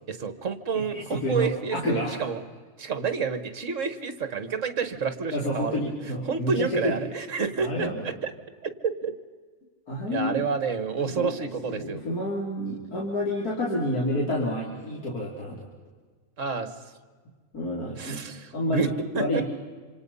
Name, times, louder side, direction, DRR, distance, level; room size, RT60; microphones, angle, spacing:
voice 1, 0.1-2.4 2.8-5.8 6.2-8.3 8.6-9.1 10.1-12.0 16.4-16.7 18.0-18.9 19.1-19.4, right 5 dB, 55° right, 11 dB, 1.7 m, -29 dB
voice 2, 0.8-2.2 5.3-7.0 7.6-8.0 9.9-10.5 11.2-11.3 11.6-15.7 17.5-18.2 18.5-19.4, left 1 dB, 80° left, -3 dB, 3.7 m, -29 dB
27.0 x 27.0 x 5.5 m, 1.5 s
omnidirectional pair, 1.6 m